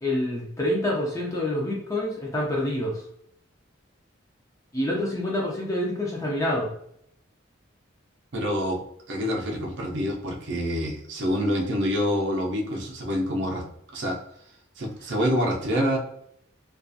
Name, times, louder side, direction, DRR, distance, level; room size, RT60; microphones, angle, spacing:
voice 1, 0.0-3.0 4.7-6.7, left 1 dB, 15° left, -2 dB, 0.4 m, -27 dB
voice 2, 8.3-13.6 13.9-14.2 14.8-16.0, equal, 60° right, 0 dB, 0.5 m, -26 dB
2.4 x 2.3 x 2.5 m, 0.71 s
head